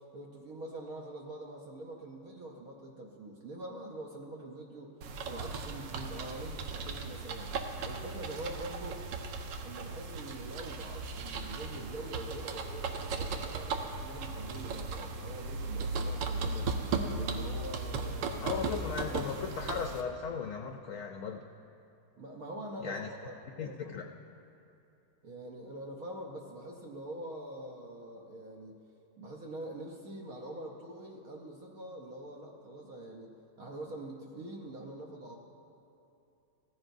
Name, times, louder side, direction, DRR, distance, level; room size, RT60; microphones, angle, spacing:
voice 1, 0.0-4.9 5.2-7.5 7.8-9.0 9.6-16.7 17.0-18.5 19.1-19.5 22.2-23.3 23.6-24.0 25.2-28.8 29.2-33.3 33.6-35.4, right 1 dB, 60° right, -1 dB, 1.3 m, -44 dB
sound 1, 5.0-20.0, right 4 dB, 85° right, 1.5 m, -37 dB
voice 2, 18.4-21.4 22.8-23.1 23.6-24.1, left 6 dB, 65° left, 3 dB, 0.8 m, -37 dB
17.0 x 14.5 x 2.6 m, 2.8 s
omnidirectional pair, 1.9 m